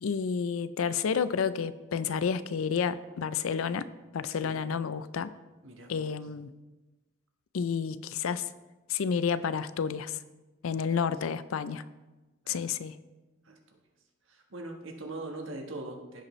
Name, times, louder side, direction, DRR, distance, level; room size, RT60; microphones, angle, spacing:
voice 1, 0.0-3.9 4.1-5.3 5.9-6.5 7.5-8.5 8.9-10.2 10.6-11.8 12.5-12.9, left 6 dB, 90° left, 15 dB, 0.4 m, -30 dB
voice 2, 5.6-6.1 10.7-11.0 12.4-12.7 13.4-13.6 14.3-16.2, right 2 dB, 75° right, 2 dB, 1.3 m, -42 dB
15.5 x 5.2 x 3.1 m, 1.1 s
head